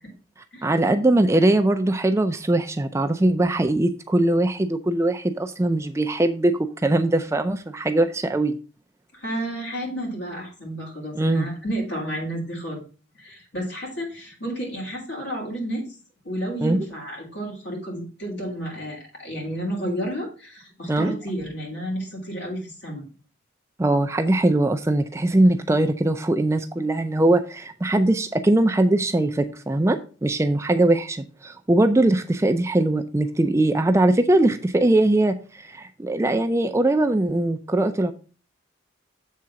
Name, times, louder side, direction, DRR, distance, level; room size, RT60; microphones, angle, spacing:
voice 1, 0.6-8.6 11.2-11.5 16.6-16.8 20.9-21.1 23.8-38.1, right 1 dB, 15° right, 7 dB, 0.3 m, -21 dB
voice 2, 9.1-12.8 13.1-15.8 16.2-23.0, right 1 dB, 65° left, -1 dB, 3.1 m, -31 dB
7.4 x 3.8 x 5.6 m, 0.37 s
head